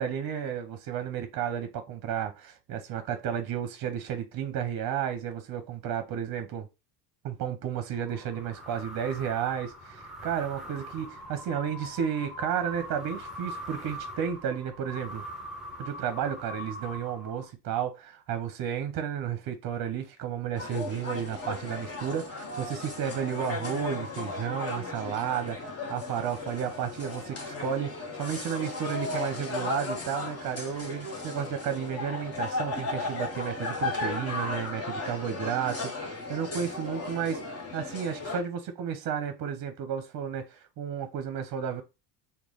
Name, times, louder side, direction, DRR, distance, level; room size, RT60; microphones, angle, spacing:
voice 1, 0.0-6.7 7.2-15.2 15.8-41.8, right 8 dB, 45° right, 0.7 m, -32 dB
sound 1, 7.9-17.7, equal, ahead, 0.9 m, -42 dB
sound 2, 20.6-38.4, left 3 dB, 30° left, 1.2 m, -35 dB
3.0 x 2.3 x 3.6 m
supercardioid pair, 85°, 48 cm